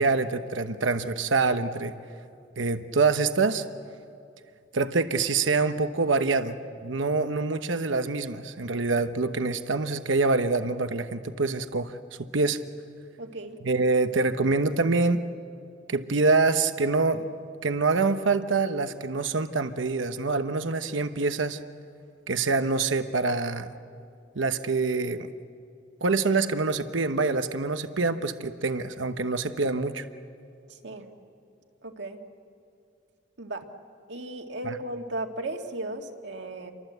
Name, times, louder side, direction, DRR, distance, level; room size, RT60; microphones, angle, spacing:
voice 1, 0.0-1.9 2.6-3.6 4.7-6.6 6.8-12.6 13.6-15.2 15.9-17.3 17.6-21.6 22.3-23.7 24.3-25.3 26.0-30.0 34.6-34.8, right 3 dB, 85° right, 9 dB, 1.0 m, -25 dB
voice 2, 13.2-13.6 30.7-31.1 31.8-32.2 33.4-33.6 34.1-36.7, right 2 dB, 65° right, 3 dB, 2.1 m, -36 dB
29.0 x 24.0 x 8.0 m, 2.5 s
head